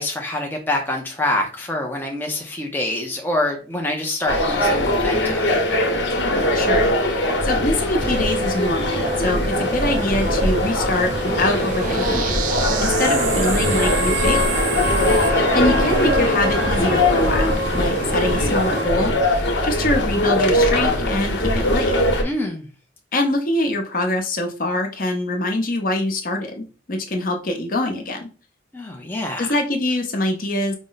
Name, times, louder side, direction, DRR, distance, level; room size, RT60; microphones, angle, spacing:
voice 1, 0.0-5.6 14.9-15.4 22.2-22.6 28.7-29.6, left 1 dB, 10° left, 0 dB, 0.5 m, -26 dB
sound 1, 4.3-22.2, left 1 dB, 90° left, 1.0 m, -21 dB
voice 2, 6.5-14.6 15.5-21.9 23.1-28.3 29.4-30.7, left 1 dB, 50° left, 3 dB, 0.8 m, -24 dB
sound 2, 8.0-18.9, equal, 75° right, 0.8 m, -27 dB
sound 3, 11.0-15.3, right 9 dB, 45° right, 0.3 m, -29 dB
5.0 x 2.1 x 3.9 m, 0.36 s
head